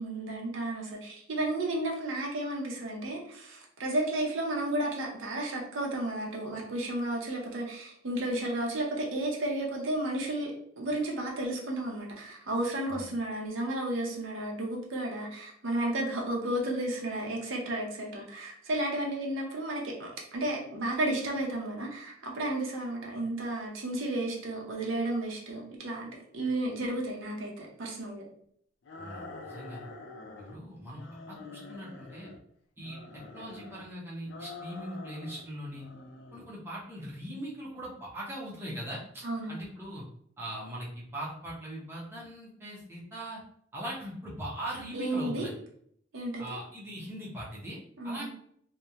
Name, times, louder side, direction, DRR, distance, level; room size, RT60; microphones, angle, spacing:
voice 1, 0.0-28.2 39.2-39.6 44.9-45.5 46.1-46.4 48.0-48.3, right 1 dB, 80° right, -1 dB, 0.6 m, -33 dB
sound 1, 28.8-30.6 30.9-32.4 32.8-33.9 34.3-35.5 35.7-36.5, left 3 dB, 65° left, 0.4 m, -46 dB
voice 2, 29.0-29.9 30.4-32.3 32.8-35.9 36.3-40.0 40.4-43.4 43.7-45.5 46.4-47.8 48.0-48.3, right 1 dB, 10° right, -6 dB, 0.6 m, -40 dB
2.9 x 2.0 x 2.4 m, 0.66 s
head